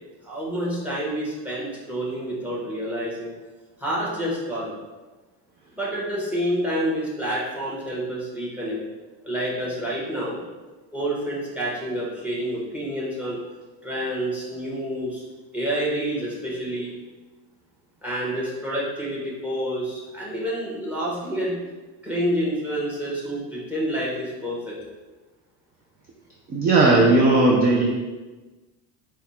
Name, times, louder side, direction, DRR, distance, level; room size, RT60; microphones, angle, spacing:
voice 1, 0.2-3.3 3.8-4.7 5.8-8.8 9.2-10.4 10.9-13.4 13.8-15.2 15.5-16.9 18.0-21.5 22.0-24.7, equal, 5° right, -5 dB, 1.1 m, -28 dB
voice 2, 26.5-27.8, right 2 dB, 25° right, -1 dB, 0.4 m, -17 dB
4.5 x 2.4 x 4.2 m, 1.2 s
cardioid pair, 135°, 40 cm